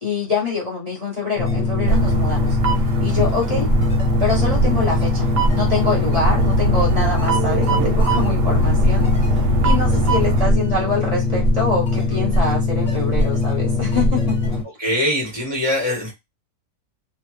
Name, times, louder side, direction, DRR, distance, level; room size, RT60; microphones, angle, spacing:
voice 1, 0.0-2.6 3.0-3.7 4.2-14.4, left 4 dB, 75° left, -2 dB, 0.3 m, -25 dB
sound 1, 1.4-14.6, left 2 dB, 35° left, 1.0 m, -21 dB
sound 2, 1.9-10.4, right 2 dB, 70° right, 0.8 m, -22 dB
voice 2, 14.8-16.1, left 1 dB, 15° left, -2 dB, 0.6 m, -22 dB
2.7 x 2.1 x 3.0 m, 0.20 s
omnidirectional pair, 1.8 m